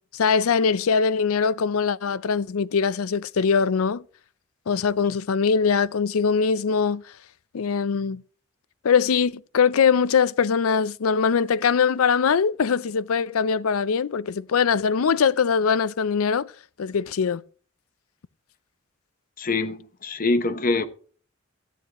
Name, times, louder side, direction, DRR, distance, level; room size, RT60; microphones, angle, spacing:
voice 1, 0.1-4.0 4.7-7.0 7.5-8.2 8.8-16.5 16.8-17.4, left 6 dB, 90° left, 0.5 m, -22 dB
voice 2, 19.4-20.9, left 3 dB, 40° left, 1.0 m, -24 dB
14.5 x 9.8 x 2.9 m
head